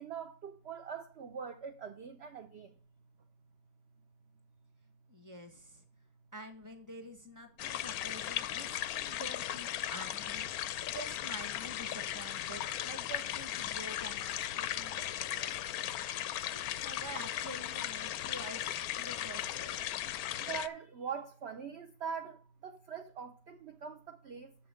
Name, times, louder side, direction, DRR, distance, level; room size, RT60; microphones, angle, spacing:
voice 1, 0.0-2.7 20.4-24.6, right 6 dB, 60° right, 0.6 m, -43 dB
voice 2, 5.1-5.8 6.3-15.6 16.5-18.7 19.0-19.9, right 1 dB, 10° right, 1.3 m, -48 dB
sound 1, 7.6-20.7, left 12 dB, 70° left, 0.9 m, -37 dB
7.1 x 5.6 x 6.5 m
omnidirectional pair, 1.9 m